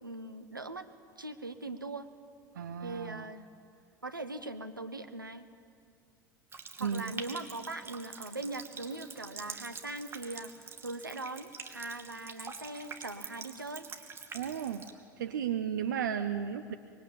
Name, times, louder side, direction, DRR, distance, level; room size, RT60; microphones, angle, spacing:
voice 1, 0.0-0.9 1.2-2.1 2.8-3.5 4.0-5.4 6.8-13.9, right 2 dB, 85° right, 9 dB, 1.3 m, -41 dB
voice 2, 2.5-3.3 6.8-7.1 14.3-14.9 15.2-16.7, right 8 dB, 70° right, 8 dB, 0.9 m, -34 dB
Water tap faucet, 6.5-14.9, right 5 dB, 20° right, 2.6 m, -46 dB
25.0 x 23.0 x 8.8 m, 2.4 s
figure-of-eight pair, 75°, 11 cm